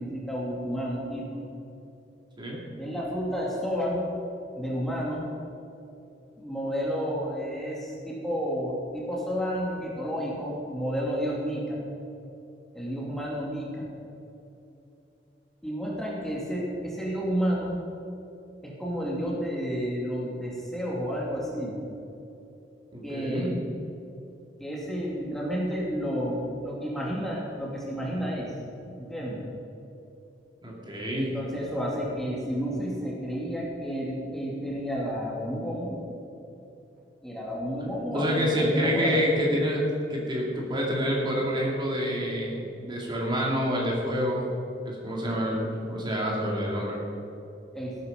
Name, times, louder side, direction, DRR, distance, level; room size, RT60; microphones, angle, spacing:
voice 1, 0.0-1.4 2.8-4.1 4.5-5.3 6.4-11.8 12.7-13.8 15.6-17.8 18.6-21.8 23.0-23.7 24.6-28.5 29.0-29.4 31.1-36.0 37.2-39.2 47.7-48.0, equal, ahead, -5 dB, 2.6 m, -31 dB
voice 2, 22.9-23.5 30.6-31.3 38.1-39.8 40.1-44.5 44.8-47.0, equal, 25° right, -3 dB, 2.6 m, -27 dB
18.0 x 9.5 x 5.3 m, 2.9 s
head